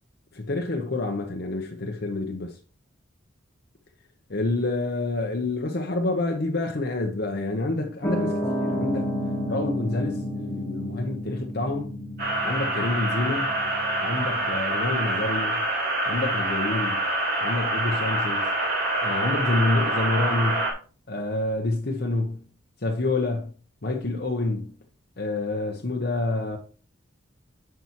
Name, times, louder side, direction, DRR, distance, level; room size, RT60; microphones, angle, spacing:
voice 1, 0.3-2.6 4.3-9.1 9.5-11.9 12.4-13.6 14.0-15.7 16.1-17.0 17.4-18.5 19.0-20.7 21.1-22.4 22.8-23.5 23.8-24.8 25.2-26.6, left 2 dB, 55° left, 0.9 m, -28 dB
Piano, 8.0-14.6, equal, 10° left, 0.9 m, -31 dB
sound 1, 12.2-20.7, right 1 dB, 50° right, 2.7 m, -26 dB
9.5 x 5.8 x 3.0 m
head